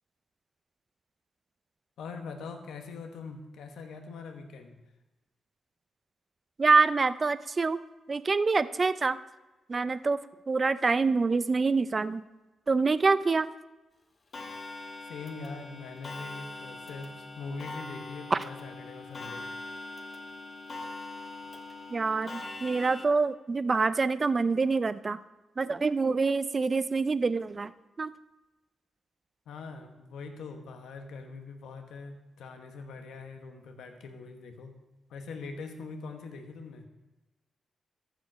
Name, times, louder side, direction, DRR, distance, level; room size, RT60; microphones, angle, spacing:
voice 1, 2.0-4.8 15.0-19.5 29.5-34.7 35.1-36.9, left 4 dB, 90° left, 5 dB, 1.1 m, -42 dB
voice 2, 6.6-7.8 8.1-9.2 9.7-10.2 10.5-12.2 12.7-13.5 18.3-18.4 21.9-25.2 25.6-27.7 28.0-28.1, right 4 dB, 35° right, 15 dB, 0.4 m, -26 dB
Clock, 14.3-23.1, left 2 dB, 40° left, 0.9 m, -42 dB
14.0 x 5.1 x 4.6 m, 1.1 s
cardioid pair, 90°, 0 cm